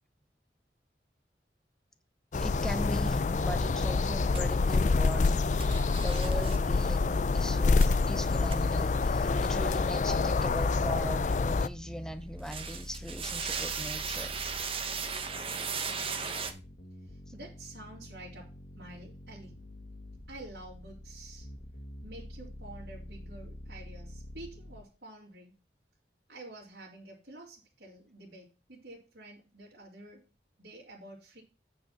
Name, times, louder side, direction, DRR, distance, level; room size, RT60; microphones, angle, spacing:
sound 1, 2.3-11.7, left 4 dB, 40° left, 0.4 m, -27 dB
voice 1, 2.3-5.7 6.0-14.4 17.3-17.4, equal, 5° left, 0.7 m, -40 dB
sound 2, 4.3-4.4 5.6-6.6 7.8-7.9 8.5-8.6 12.4-16.5, right 6 dB, 30° right, 1.0 m, -36 dB
sound 3, 11.6-24.8, left 1 dB, 70° left, 1.5 m, -46 dB
voice 2, 17.3-19.6 20.3-21.5 22.0-25.5 26.3-30.3 30.6-31.4, right 2 dB, 75° right, 2.9 m, -49 dB
8.8 x 4.9 x 5.6 m
head